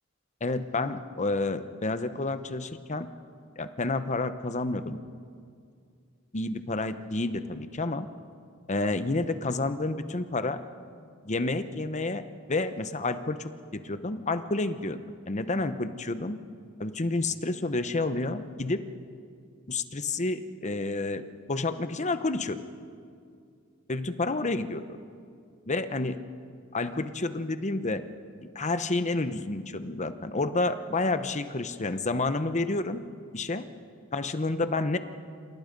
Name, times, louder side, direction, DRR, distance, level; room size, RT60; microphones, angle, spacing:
voice 1, 0.4-3.1 3.6-5.0 6.3-8.1 8.7-10.6 11.2-12.2 12.5-15.0 15.3-16.4 16.8-18.9 19.7-22.6 23.9-24.8 25.7-26.2 26.7-28.0 28.5-33.0 33.3-33.7 34.1-35.0, left 2 dB, 35° left, 10 dB, 1.0 m, -29 dB
28.0 x 27.5 x 5.3 m, 2.3 s
head